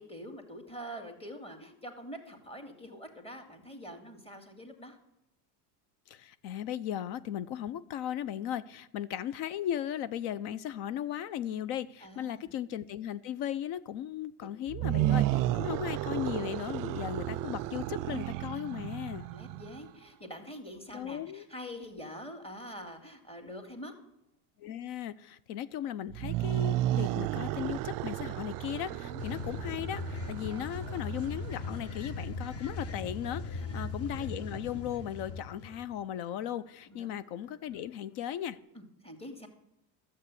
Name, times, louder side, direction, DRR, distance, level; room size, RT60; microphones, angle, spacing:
voice 1, 0.0-5.0 12.0-12.5 14.4-14.5 14.9-15.0 15.4-15.7 18.7-23.9 28.9-29.2 33.5-33.8 36.9-37.1 38.7-39.5, equal, 15° left, 2.4 m, -45 dB
voice 2, 6.1-19.3 20.9-21.4 24.6-38.6, left 10 dB, 70° left, 0.7 m, -37 dB
sound 1, 14.7-19.9 26.1-31.8, right 14 dB, 50° right, 0.5 m, -33 dB
sound 2, 29.2-36.0 38.5-38.6, left 3 dB, 35° left, 1.4 m, -39 dB
12.0 x 7.5 x 8.3 m
supercardioid pair, 115°, 41 cm